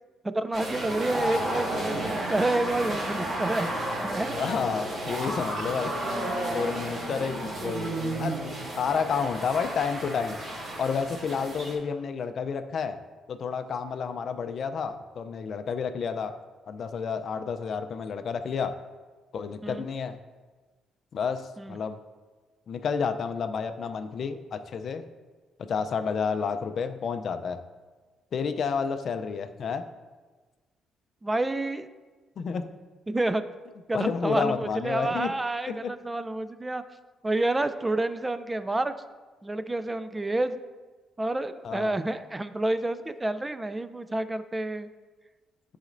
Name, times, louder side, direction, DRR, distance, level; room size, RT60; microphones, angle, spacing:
voice 1, 0.2-4.4 6.1-6.4 19.6-19.8 21.6-21.8 31.2-31.9 33.1-33.4 33.9-36.8 37.2-38.9 39.4-40.6 41.2-44.9, right 2 dB, 15° right, 12 dB, 0.3 m, -29 dB
sound 1, 0.5-11.8, right 1 dB, 50° right, 1.6 m, -32 dB
voice 2, 4.4-6.2 6.5-8.4 8.8-10.4 10.8-13.0 13.3-16.3 16.7-18.7 19.3-20.2 21.1-22.0 22.7-25.0 25.7-27.6 28.3-29.8 32.4-32.7 33.9-35.3 35.7-35.9 41.6-42.0, left 6 dB, 55° left, 9 dB, 0.4 m, -30 dB
10.5 x 4.2 x 2.5 m, 1.3 s
cardioid pair, 105°, 0 cm